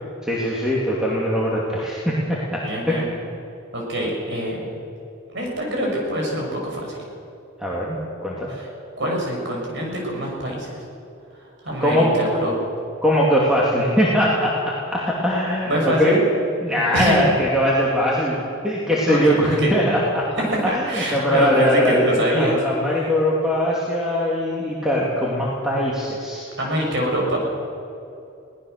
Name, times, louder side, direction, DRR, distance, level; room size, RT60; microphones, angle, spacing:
voice 1, 0.2-3.1 7.6-8.5 11.8-12.2 13.0-16.2 16.6-18.4 18.6-20.2 20.6-22.1 22.4-26.5, equal, 5° right, -6 dB, 2.6 m, -21 dB
voice 2, 2.6-3.1 3.7-4.8 5.3-7.0 8.6-8.7 9.0-10.8 11.4-12.5 15.6-16.2 16.9-17.3 19.1-19.7 20.7-22.6 23.0-23.1 26.6-27.4, equal, 55° right, -1 dB, 6.2 m, -24 dB
22.0 x 18.0 x 6.6 m, 2.6 s
head